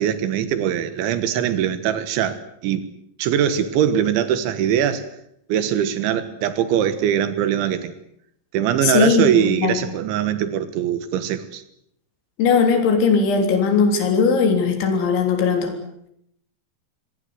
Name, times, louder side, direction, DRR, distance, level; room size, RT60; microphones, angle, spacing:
voice 1, 0.0-2.8 3.2-5.1 5.5-7.9 8.5-11.6, right 9 dB, 80° right, 12 dB, 3.8 m, -21 dB
voice 2, 8.8-9.8 12.4-15.7, left 5 dB, 75° left, 4 dB, 5.9 m, -18 dB
26.5 x 20.0 x 8.0 m, 0.74 s
omnidirectional pair, 5.4 m